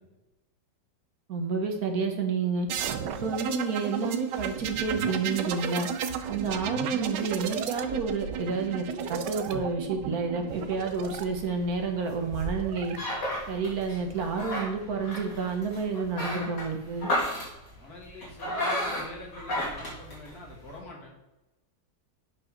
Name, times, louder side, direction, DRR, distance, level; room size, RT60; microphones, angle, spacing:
voice 1, 1.3-2.7 3.2-5.9 6.3-13.0 13.5-17.1, right 4 dB, 60° right, 3 dB, 1.4 m, -30 dB
sound 1, 2.7-11.2 12.4-13.0, right 7 dB, 80° right, 1.3 m, -33 dB
sound 2, 10.5-20.8, left 1 dB, 75° left, 3.8 m, -34 dB
voice 2, 17.7-21.1, left 2 dB, 60° left, -3 dB, 2.5 m, -45 dB
8.7 x 4.8 x 5.8 m, 1.0 s
omnidirectional pair, 1.9 m